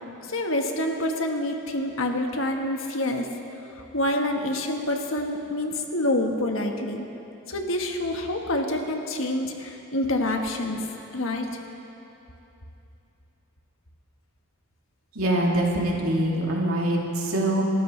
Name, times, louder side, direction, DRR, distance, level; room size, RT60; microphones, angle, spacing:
voice 1, 0.3-3.3 3.9-7.1 7.5-10.8 11.1-11.6, left 1 dB, 70° left, 3 dB, 1.4 m, -27 dB
voice 2, 15.1-17.6, right 1 dB, 90° right, -2 dB, 2.7 m, -24 dB
29.0 x 13.0 x 3.3 m, 2.9 s
head